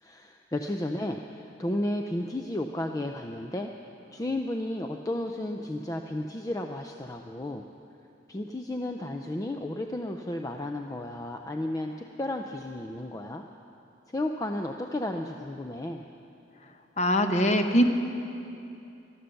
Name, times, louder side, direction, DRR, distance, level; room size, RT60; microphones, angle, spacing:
voice 1, 0.0-3.7 4.1-7.6 8.3-13.4 14.1-16.0, left 1 dB, 15° left, 4 dB, 0.4 m, -33 dB
voice 2, 17.0-17.8, equal, 35° left, 6 dB, 0.8 m, -22 dB
13.0 x 12.5 x 7.0 m, 2.8 s
head